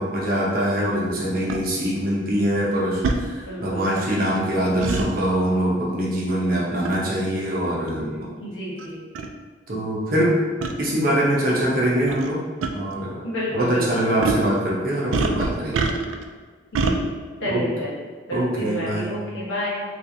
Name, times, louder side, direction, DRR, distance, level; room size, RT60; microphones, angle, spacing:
voice 1, 0.0-8.3 9.7-10.4 10.8-12.4 12.7-13.2 13.5-15.9 17.5-17.6 18.3-19.2, right 1 dB, 50° right, -5 dB, 0.9 m, -23 dB
sound 1, 1.5-1.6 3.0-3.2 4.8-5.1 6.8-7.1 7.9-8.0 8.8-8.9 9.1-9.3 10.6-10.7 12.1-12.3 12.6-12.7 14.2-14.5 15.1-16.2 16.7-17.0, right 4 dB, 90° right, 0.3 m, -24 dB
voice 2, 3.4-3.9 8.4-9.0 13.2-14.1 16.7-17.0 17.4-17.9 18.3-19.8, equal, 70° left, -7 dB, 1.2 m, -29 dB
3.3 x 3.1 x 2.7 m, 1.5 s
head